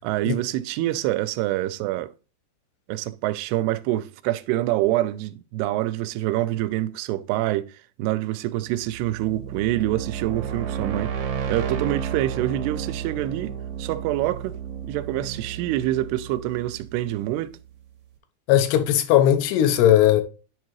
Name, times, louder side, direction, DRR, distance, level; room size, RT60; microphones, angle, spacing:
voice 1, 0.0-2.1 2.9-7.7 8.0-11.1 11.5-13.5 13.8-14.6 14.9-17.6, right 15 dB, 90° right, 2.6 m, -26 dB
sound 1, 8.7-17.5, right 8 dB, 70° right, 1.7 m, -32 dB
voice 2, 18.5-20.2, left 11 dB, 90° left, 2.8 m, -18 dB
10.5 x 3.7 x 3.0 m
omnidirectional pair, 4.6 m